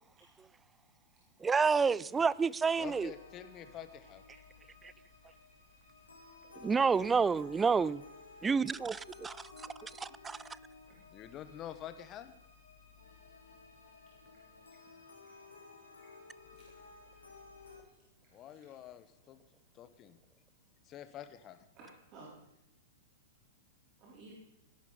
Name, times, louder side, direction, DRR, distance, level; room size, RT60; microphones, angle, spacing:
voice 1, 1.4-3.1 6.6-8.0 8.4-9.4 9.8-10.4, right 5 dB, 15° right, 0.4 m, -29 dB
sound 1, 2.7-17.8, left 4 dB, 85° left, 4.2 m, -55 dB
voice 2, 2.8-4.2 11.1-12.4 18.3-19.4 19.7-20.2 20.8-21.7, left 10 dB, 30° left, 1.2 m, -47 dB
voice 3, 6.7-7.1 10.9-11.0 15.2-15.4 16.0-16.1 16.5-16.7 17.6-17.7 18.6-18.7 21.8-22.4 24.0-24.3, right 2 dB, 35° right, 3.7 m, -55 dB
17.0 x 11.0 x 4.0 m
figure-of-eight pair, 105°, 0 cm